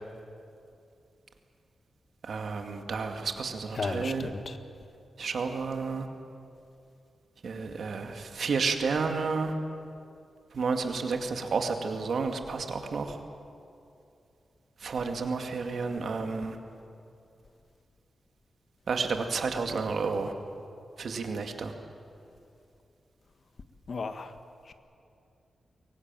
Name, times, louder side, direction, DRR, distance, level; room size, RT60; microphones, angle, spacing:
voice 1, 2.2-4.3 5.2-6.1 7.4-9.5 10.5-13.2 14.8-16.6 18.9-20.3 21.0-21.7, right 4 dB, 70° right, 5 dB, 2.2 m, -31 dB
voice 2, 3.8-4.6 23.9-24.3 24.7-24.8, left 4 dB, 55° left, 9 dB, 1.4 m, -34 dB
22.5 x 18.5 x 9.0 m, 2.6 s
cardioid pair, 85°, 0 cm